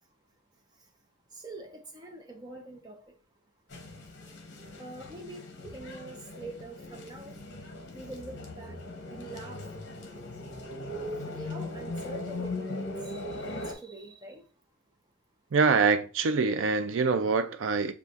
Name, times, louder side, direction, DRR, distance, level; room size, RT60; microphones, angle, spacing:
voice 1, 0.5-1.0 1.3-3.2 4.2-4.3 4.8-7.4 7.9-8.8 9.1-9.7 11.1-14.5, right 2 dB, 20° right, 0.7 m, -45 dB
sound 1, 3.7-13.7, left 2 dB, 65° left, 0.8 m, -39 dB
voice 2, 15.5-17.9, right 4 dB, 90° right, 0.4 m, -25 dB
6.8 x 2.4 x 2.5 m
head